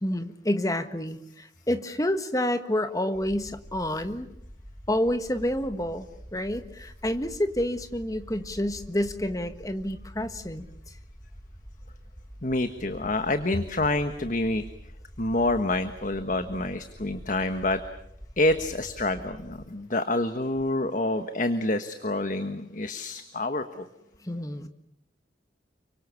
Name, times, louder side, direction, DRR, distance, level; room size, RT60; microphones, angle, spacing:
voice 1, 0.0-4.3 4.9-10.9 24.2-24.7, left 1 dB, 20° left, 9 dB, 1.5 m, -29 dB
sound 1, 3.1-19.7, equal, 5° right, 3.4 m, -47 dB
voice 2, 12.4-14.6 15.2-17.8 18.4-23.9, left 2 dB, 45° left, 9 dB, 1.3 m, -27 dB
29.5 x 24.5 x 7.1 m, 0.75 s
head